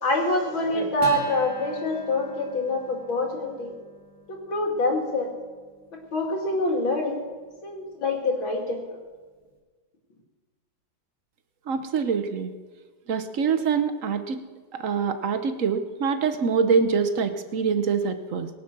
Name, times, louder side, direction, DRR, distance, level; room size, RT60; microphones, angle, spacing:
voice 1, 0.0-3.7 4.3-5.3 5.9-7.2 7.6-9.0, left 2 dB, 85° left, 1 dB, 3.3 m, -26 dB
Acoustic guitar, 1.0-7.8, left 1 dB, 5° left, 4.4 m, -45 dB
voice 2, 11.7-12.5 13.1-14.4 14.7-18.5, right 5 dB, 50° right, 9 dB, 1.1 m, -25 dB
22.5 x 7.5 x 6.1 m, 1.4 s
omnidirectional pair, 2.1 m